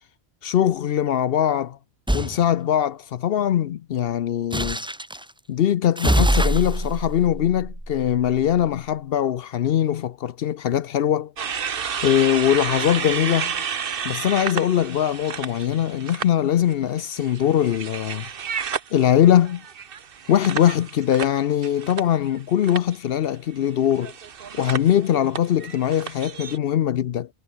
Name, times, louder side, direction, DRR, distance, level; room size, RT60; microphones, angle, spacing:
voice 1, 0.4-1.8 2.1-4.8 5.5-11.3 12.0-13.5 14.0-18.3 18.9-19.6 20.3-24.1 24.5-27.3, left 10 dB, 70° left, 0.8 m, -21 dB
sound 1, 2.1-2.4 4.5-5.2 6.0-8.6, right 1 dB, 5° right, 0.7 m, -24 dB
sound 2, 11.4-16.3 16.7-22.4 22.6-23.0 23.9-26.6, right 7 dB, 60° right, 1.2 m, -31 dB
omnidirectional pair, 1.1 m